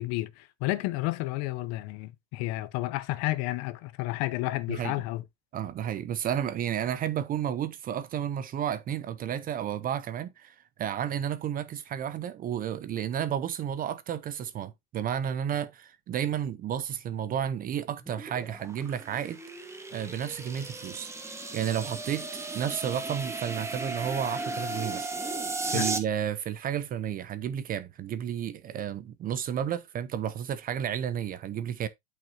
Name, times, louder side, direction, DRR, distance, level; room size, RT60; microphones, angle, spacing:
voice 1, 0.0-5.2 25.7-25.9, left 18 dB, 45° left, 0.9 m, -31 dB
voice 2, 5.5-21.1 21.5-22.3 22.5-31.9, right 9 dB, 25° right, 0.6 m, -32 dB
sound 1, 18.0-26.0, right 3 dB, 10° right, 1.1 m, -35 dB
8.5 x 6.3 x 2.8 m
supercardioid pair, 125°, 35 cm